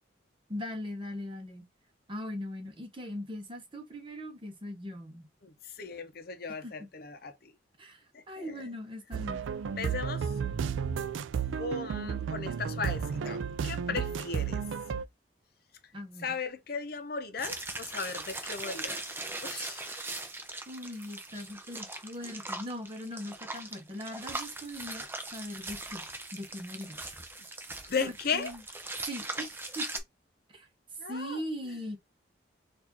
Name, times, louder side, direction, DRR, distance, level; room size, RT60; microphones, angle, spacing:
voice 1, 0.5-1.7 2.1-5.3 6.6-6.9 7.8-9.5 13.9-14.1 15.9-16.4 20.7-26.1 26.3-27.0 28.0-28.6 29.0-29.9 30.5-30.7 31.1-32.0, equal, 25° right, 0.9 m, -40 dB
voice 2, 5.4-7.5 8.1-8.6 9.8-10.4 11.6-14.6 16.2-19.0 19.4-19.9 27.8-28.5 31.0-31.4, left 5 dB, 50° left, 0.7 m, -36 dB
sound 1, 9.1-15.0, right 7 dB, 85° right, 0.3 m, -33 dB
sound 2, 17.4-30.0, right 2 dB, 10° right, 0.5 m, -40 dB
4.0 x 2.5 x 2.8 m
head